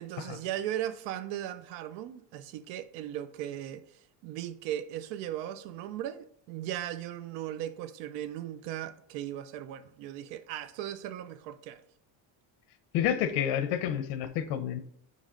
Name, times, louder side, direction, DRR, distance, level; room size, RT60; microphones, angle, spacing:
voice 1, 0.0-11.8, right 12 dB, 80° right, 0.7 m, -37 dB
voice 2, 12.9-14.8, left 9 dB, 80° left, 0.9 m, -29 dB
9.4 x 3.2 x 3.8 m
cardioid pair, 155°, 43 cm